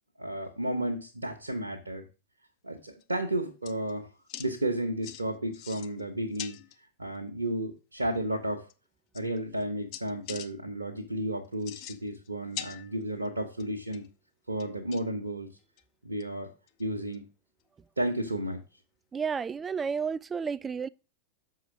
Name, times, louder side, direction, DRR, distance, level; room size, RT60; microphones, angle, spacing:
voice 1, 0.2-2.0 2.6-4.1 4.4-6.6 7.0-8.7 9.1-14.1 14.5-15.5 16.0-16.5 16.8-17.3 18.0-18.6, right 1 dB, 80° right, 1.1 m, -32 dB
sound 1, 2.9-3.2 3.6-3.9 4.3-4.5 5.0-5.2 5.5-6.0 6.3-6.8 8.1-8.2 8.7-8.8 9.1-9.6 9.9-10.5 11.5-12.3 12.5-13.3 13.6-14.1 14.6-15.2 15.8-15.9 16.2-16.3 16.7-16.8 17.1-17.2 19.2-19.3, left 12 dB, 45° left, 0.7 m, -42 dB
voice 2, 19.1-20.9, right 6 dB, 15° right, 0.3 m, -31 dB
6.7 x 5.0 x 6.2 m
figure-of-eight pair, 90°, 0 cm